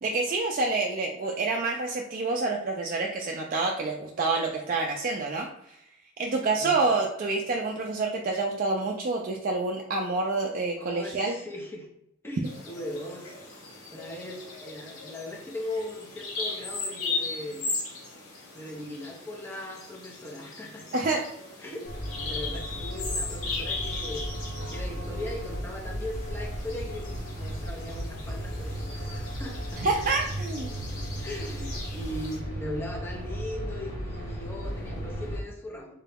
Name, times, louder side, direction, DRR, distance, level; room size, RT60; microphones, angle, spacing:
voice 1, 0.0-5.8 6.2-11.4 20.9-21.2 29.8-30.7, right 3 dB, 40° right, 0 dB, 0.3 m, -28 dB
voice 2, 10.8-11.9 12.2-17.7 18.5-21.0 21.6-24.2 24.7-29.8 31.2-35.9, left 1 dB, 10° left, -1 dB, 0.6 m, -39 dB
Bird vocalization bird call bird song, 12.4-32.4, left 3 dB, 85° left, 1.2 m, -38 dB
sound 1, 21.8-35.4, equal, 40° left, 1.1 m, -35 dB
3.8 x 2.2 x 3.4 m, 0.76 s
head